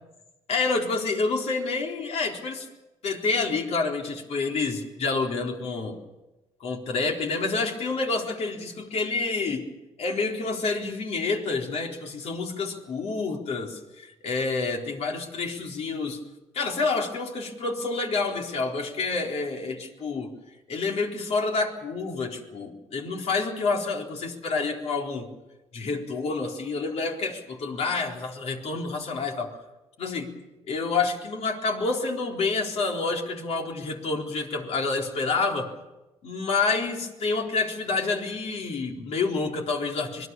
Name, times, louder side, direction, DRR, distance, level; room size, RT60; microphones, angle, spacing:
voice 1, 0.5-2.7 3.0-6.0 6.6-9.6 10.0-16.2 16.5-20.3 20.7-25.3 25.7-29.5 30.0-30.3 30.7-35.7 36.2-40.3, left 4 dB, 60° left, 1 dB, 4.2 m, -28 dB
25.5 x 21.5 x 7.1 m, 1.0 s
cardioid pair, 110°, 12 cm